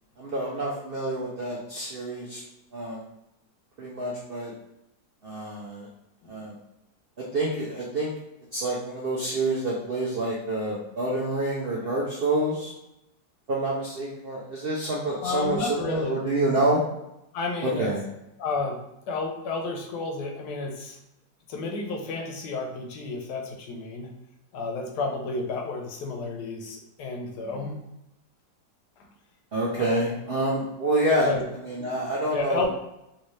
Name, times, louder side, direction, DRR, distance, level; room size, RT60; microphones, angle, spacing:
voice 1, 0.2-2.4 2.7-3.0 3.8-4.5 5.2-5.9 6.3-6.5 7.3-8.1 8.5-12.7 13.5-16.8 17.6-18.0 29.5-31.3 31.6-32.6, right 1 dB, 70° right, -5 dB, 0.5 m, -27 dB
voice 2, 15.2-16.2 17.3-17.9 18.4-18.8 19.1-21.0 21.5-24.1 24.5-27.8 29.0-29.1 29.8-30.0 31.0-31.4 32.3-32.7, left 3 dB, 85° left, 2 dB, 1.2 m, -31 dB
3.1 x 2.7 x 3.1 m, 0.87 s
omnidirectional pair, 1.7 m